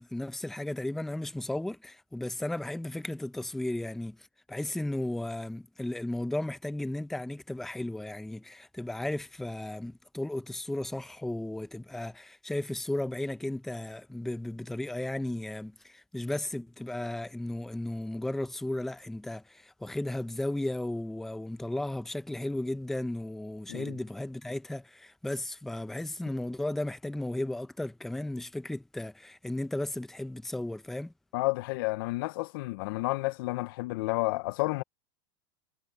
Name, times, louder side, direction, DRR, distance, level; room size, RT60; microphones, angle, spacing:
voice 1, 0.0-31.1, left 1 dB, ahead, 0.7 m, -35 dB
voice 2, 31.3-34.8, left 22 dB, 50° left, 0.7 m, -31 dB
supercardioid pair, 155°, 15 cm